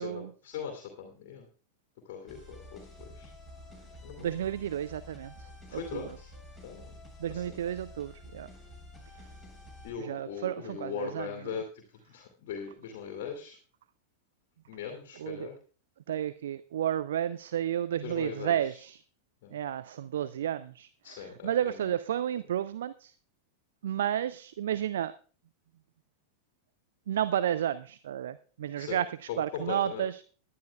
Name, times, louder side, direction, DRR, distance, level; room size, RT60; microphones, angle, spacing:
voice 1, 0.0-1.5 2.0-3.3 4.0-4.5 5.7-6.3 6.6-6.9 7.3-7.6 9.8-13.6 14.7-15.5 18.0-18.8 19.4-19.5 21.0-21.9 28.8-29.0 29.3-30.0, left 7 dB, 50° left, 3 dB, 2.5 m, -40 dB
sound 1, 2.3-9.9, left 2 dB, 5° right, 7.7 m, -49 dB
voice 2, 4.2-6.1 7.2-8.5 10.0-11.6 15.2-15.5 16.1-19.0 19.5-23.1 23.8-25.1 27.1-29.1 29.4-30.2, right 10 dB, 60° right, 16 dB, 0.4 m, -32 dB
20.5 x 11.0 x 2.3 m, 0.39 s
figure-of-eight pair, 90°, 0 cm